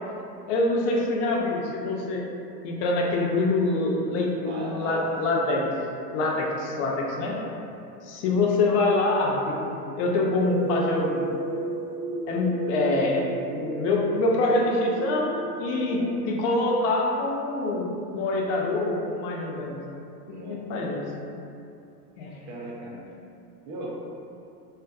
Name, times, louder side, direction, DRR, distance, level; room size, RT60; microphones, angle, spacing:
voice 1, 0.5-2.3 2.6-5.7 6.1-7.4 8.0-11.3 12.3-13.2 13.5-19.8 20.3-21.0 22.2-22.3, left 2 dB, 50° left, -1 dB, 0.5 m, -25 dB
voice 2, 4.4-5.1 7.2-7.6 15.8-16.2 20.3-20.7 22.3-23.0 23.6-23.9, right 2 dB, 35° right, -4 dB, 0.5 m, -39 dB
sound 1, 10.4-16.2, right 2 dB, 75° right, 0.7 m, -33 dB
2.5 x 2.5 x 2.3 m, 2.6 s
hypercardioid pair, 110°, 49 cm